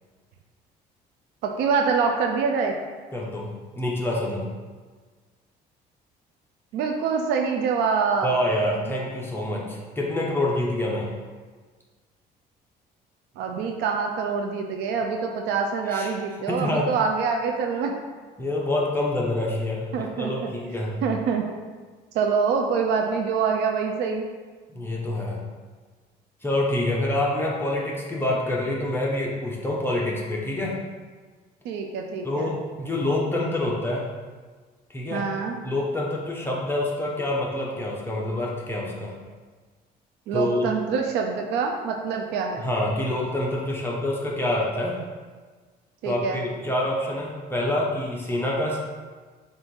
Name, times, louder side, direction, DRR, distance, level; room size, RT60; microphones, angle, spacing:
voice 1, 1.4-2.7 6.7-8.4 13.4-18.0 19.9-20.5 21.0-21.5 22.1-24.3 31.6-32.5 35.1-35.6 40.3-42.6 46.0-46.4, right 5 dB, 85° right, 3 dB, 0.6 m, -25 dB
voice 2, 3.1-3.5 3.7-4.5 8.2-11.1 15.9-16.1 16.5-16.9 18.4-21.0 24.7-25.4 26.4-30.8 32.2-34.1 34.9-35.3 35.6-39.1 40.3-40.7 42.6-45.0 46.0-48.9, left 1 dB, 15° left, -4 dB, 1.0 m, -26 dB
6.9 x 2.7 x 5.4 m, 1.4 s
cardioid pair, 110°, 17 cm